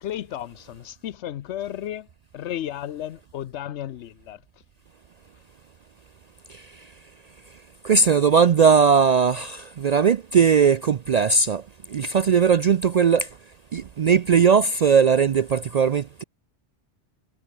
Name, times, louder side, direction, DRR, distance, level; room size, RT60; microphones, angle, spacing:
voice 1, 0.0-2.1 2.3-4.4, left 11 dB, 80° left, 1.0 m, -33 dB
voice 2, 7.8-11.6 11.9-13.3 13.7-16.2, right 6 dB, 60° right, 0.4 m, -19 dB
omnidirectional pair, 1.2 m